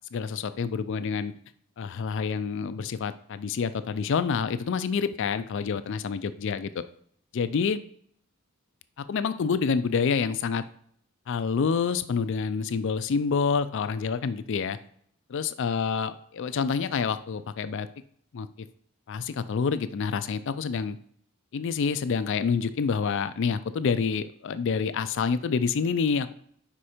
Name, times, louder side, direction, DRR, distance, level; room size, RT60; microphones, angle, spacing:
voice 1, 0.1-1.3 1.8-6.8 7.3-7.8 9.0-10.6 11.3-14.8 15.3-17.9 18.3-18.5 19.1-21.0 21.5-26.3, left 5 dB, 60° left, 12 dB, 0.4 m, -27 dB
5.2 x 4.9 x 4.3 m, 0.63 s
head